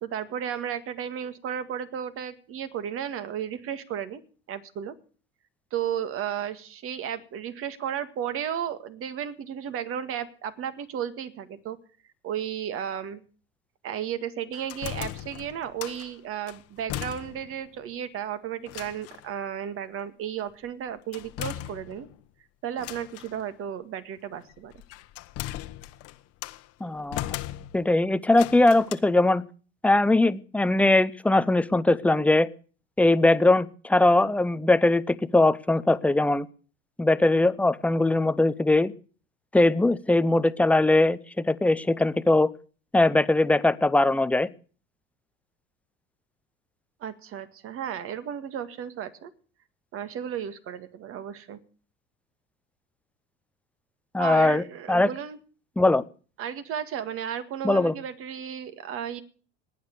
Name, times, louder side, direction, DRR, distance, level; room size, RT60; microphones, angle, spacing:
voice 1, 0.0-4.2 4.5-5.0 5.7-11.8 12.2-13.2 13.8-22.1 22.6-24.7 47.0-49.3 49.9-51.6 54.2-55.4 56.4-59.2, right 9 dB, 45° right, 11 dB, 1.9 m, -34 dB
sound 1, 14.5-16.1 16.5-17.6 17.9-18.0 18.7-19.3 21.1-22.2 22.8-23.4 24.5-26.7 27.1-28.0 28.3-29.0, left 15 dB, 50° left, 1.2 m, -37 dB
voice 2, 26.8-27.2 27.7-29.4 29.8-32.5 33.0-36.5 37.0-38.9 39.5-42.5 42.9-44.5 54.1-55.1 55.8-56.0 57.6-57.9, left 2 dB, 5° left, 16 dB, 0.7 m, -21 dB
18.5 x 9.6 x 6.7 m, 0.41 s
hypercardioid pair, 100°, 31 cm